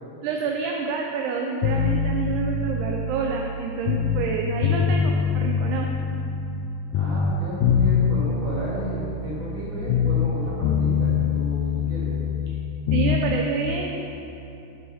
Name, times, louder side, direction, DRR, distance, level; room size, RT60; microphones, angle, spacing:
voice 1, 0.2-5.9 12.9-14.0, right 4 dB, 80° right, 0 dB, 1.9 m, -28 dB
sound 1, 1.6-4.3 4.6-6.7 6.9-10.4 10.6-13.3, left 6 dB, 80° left, 2.1 m, -24 dB
voice 2, 6.9-12.1, equal, 50° right, -9 dB, 3.2 m, -34 dB
10.0 x 4.4 x 5.5 m, 2.9 s
omnidirectional pair, 3.8 m